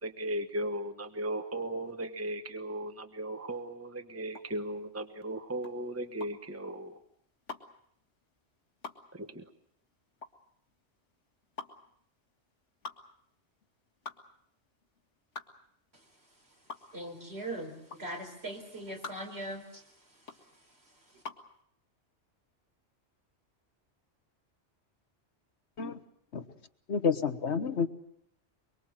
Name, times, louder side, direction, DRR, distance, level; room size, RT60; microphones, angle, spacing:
voice 1, 0.0-7.0 9.1-9.5, right 1 dB, 15° right, 1.2 m, -37 dB
sound 1, 4.3-21.5, left 4 dB, 85° left, 2.3 m, -47 dB
voice 2, 16.9-19.8, right 1 dB, 60° right, 4.6 m, -40 dB
voice 3, 26.9-27.9, left 6 dB, 70° left, 1.5 m, -29 dB
24.0 x 23.5 x 7.6 m
omnidirectional pair, 1.2 m